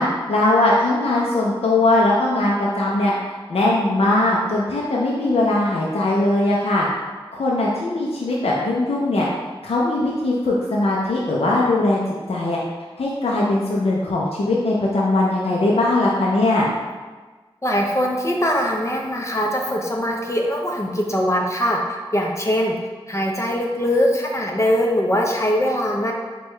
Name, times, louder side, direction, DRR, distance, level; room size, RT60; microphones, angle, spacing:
voice 1, 0.0-3.1 3.5-6.9 7.3-9.3 9.6-12.0 12.3-12.6 13.0-16.7, left 2 dB, 90° left, -4 dB, 0.5 m, -20 dB
voice 2, 17.6-21.8 22.1-22.7 23.1-26.1, equal, 30° left, 0 dB, 0.6 m, -21 dB
4.5 x 2.3 x 3.1 m, 1.3 s
wide cardioid pair, 55°, 10 cm